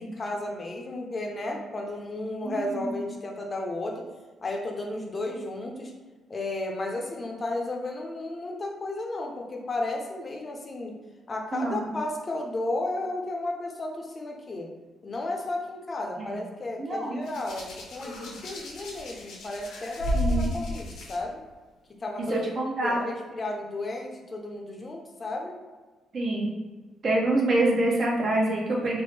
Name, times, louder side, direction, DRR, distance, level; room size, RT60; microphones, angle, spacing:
voice 1, 0.0-4.0 4.4-5.9 6.3-11.0 11.3-14.7 15.0-21.4 22.0-25.5, left 2 dB, 35° left, 1 dB, 0.6 m, -33 dB
voice 2, 2.4-3.0 11.5-11.9 16.2-16.3 16.8-17.2 20.1-20.4 22.3-23.0 26.1-26.6 27.0-29.0, right 2 dB, 50° right, -2 dB, 0.8 m, -26 dB
Hands, 17.2-21.2 22.2-22.4, equal, 80° left, 0.8 m, -32 dB
3.5 x 2.0 x 3.2 m, 1.3 s
cardioid pair, 90°, 0 cm